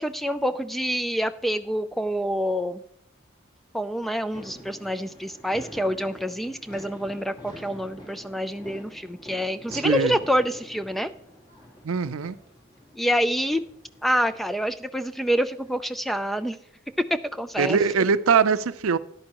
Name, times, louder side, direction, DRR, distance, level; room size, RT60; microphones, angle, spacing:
voice 1, 0.0-2.8 3.7-11.1 13.0-13.6 14.0-16.6 17.0-17.1 17.3-17.8, equal, ahead, 11 dB, 0.4 m, -27 dB
sound 1, 4.3-15.7, equal, 25° left, 3.1 m, -46 dB
voice 2, 9.7-10.2 11.8-12.4 17.6-19.0, right 6 dB, 80° right, 14 dB, 0.5 m, -22 dB
13.5 x 10.5 x 3.0 m, 0.68 s
head